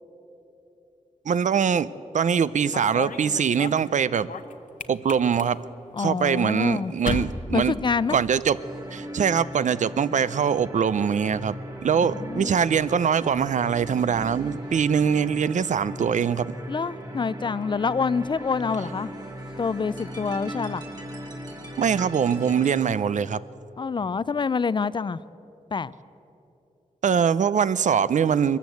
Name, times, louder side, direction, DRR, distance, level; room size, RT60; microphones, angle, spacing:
voice 1, 1.3-4.3 4.9-5.6 6.0-7.8 8.1-8.6 8.9-11.5 11.8-16.6 21.8-23.4 27.0-28.6, right 7 dB, 65° right, 17 dB, 0.5 m, -23 dB
sound 1, 2.4-8.6 8.9-9.4 10.5-22.1, left 4 dB, 85° left, 1.0 m, -41 dB
voice 2, 5.9-6.9 7.5-8.2 12.1-12.6 16.7-19.1 19.6-20.8 23.8-25.2 25.7-25.9, left 5 dB, 35° left, 18 dB, 0.4 m, -26 dB
sound 2, 8.5-22.8, equal, 30° right, 2.6 m, -38 dB
22.0 x 14.0 x 8.4 m, 3.0 s
wide cardioid pair, 175°, 13 cm